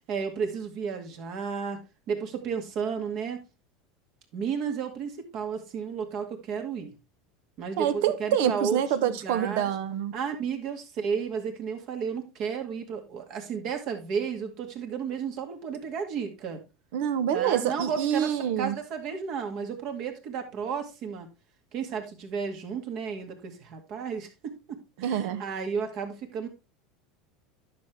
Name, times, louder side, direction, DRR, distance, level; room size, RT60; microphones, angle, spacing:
voice 1, 0.1-1.8 2.1-3.4 4.3-6.9 7.6-9.8 10.1-16.6 17.3-21.3 21.7-26.5, right 6 dB, 50° right, 2.0 m, -33 dB
voice 2, 7.8-10.1 16.9-18.7 25.0-25.4, right 9 dB, 75° right, 1.0 m, -26 dB
10.5 x 6.2 x 3.4 m
supercardioid pair, 125°, 0 cm